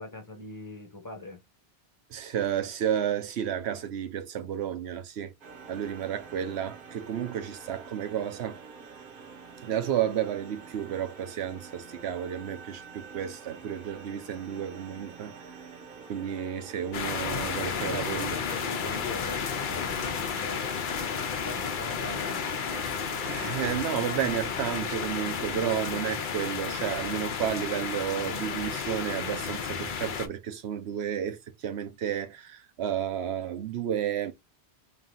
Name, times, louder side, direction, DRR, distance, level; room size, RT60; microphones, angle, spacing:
voice 1, 0.0-1.4 17.9-20.8 21.4-22.6, left 3 dB, 20° left, 1.1 m, -42 dB
voice 2, 2.1-5.3 5.7-8.6 9.6-15.3 16.1-18.3 23.2-34.3, right 9 dB, 80° right, 1.0 m, -32 dB
sound 1, 5.4-24.8, right 5 dB, 60° right, 1.1 m, -47 dB
sound 2, 16.9-30.3, left 6 dB, 55° left, 0.7 m, -32 dB
3.5 x 2.8 x 3.7 m
omnidirectional pair, 1.1 m